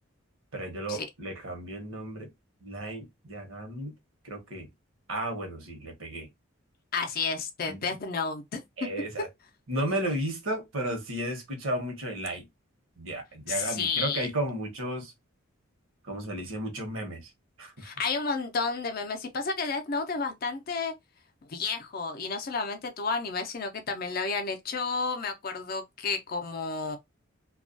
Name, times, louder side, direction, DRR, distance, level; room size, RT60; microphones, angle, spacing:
voice 1, 0.5-2.3 2.6-3.9 4.2-4.7 5.1-6.3 7.7-7.8 8.8-9.3 9.7-12.4 13.0-15.1 16.0-17.3 17.6-17.9, right 1 dB, 75° right, 0.9 m, -33 dB
voice 2, 6.9-8.9 13.5-14.3 17.8-20.9 21.5-27.0, left 4 dB, 45° left, 0.5 m, -31 dB
2.3 x 2.1 x 2.4 m
head